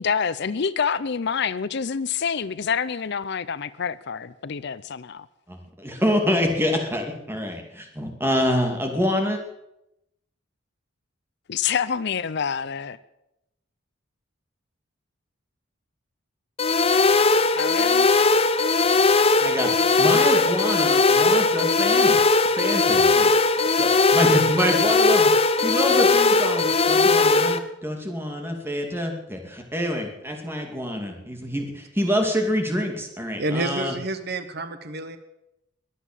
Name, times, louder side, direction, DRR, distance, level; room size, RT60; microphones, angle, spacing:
voice 1, 0.0-5.3 11.5-13.0 17.6-18.1, left 6 dB, 55° left, 16 dB, 0.5 m, -27 dB
voice 2, 5.5-9.4 19.4-22.2 22.5-23.3 23.8-33.9, equal, 10° right, 3 dB, 2.5 m, -26 dB
sound 1, 16.6-27.6, left 3 dB, 30° left, 0.8 m, -19 dB
voice 3, 33.4-35.2, right 2 dB, 50° right, 10 dB, 1.2 m, -29 dB
22.0 x 8.3 x 7.4 m, 0.86 s
head